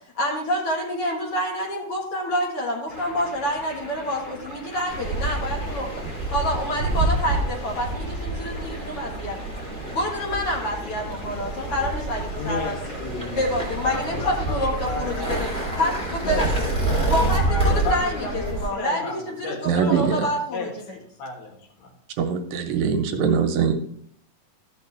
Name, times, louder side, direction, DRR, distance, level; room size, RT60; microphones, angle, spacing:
voice 1, 0.2-5.9 6.3-9.6 9.9-12.8 13.4-15.5 15.8-16.5 17.1-21.0, left 1 dB, 55° left, -1 dB, 1.8 m, -27 dB
sound 1, 2.9-18.5, right 1 dB, 40° left, 4.8 m, -42 dB
sound 2, 4.9-18.7, right 2 dB, 5° left, 1.2 m, -27 dB
voice 2, 12.4-15.4 16.2-16.8 17.5-21.9, left 2 dB, 85° left, 2 dB, 3.5 m, -33 dB
voice 3, 19.7-20.2 22.2-23.7, right 6 dB, 80° right, 5 dB, 2.4 m, -22 dB
13.5 x 6.2 x 3.3 m, 0.65 s
omnidirectional pair, 4.3 m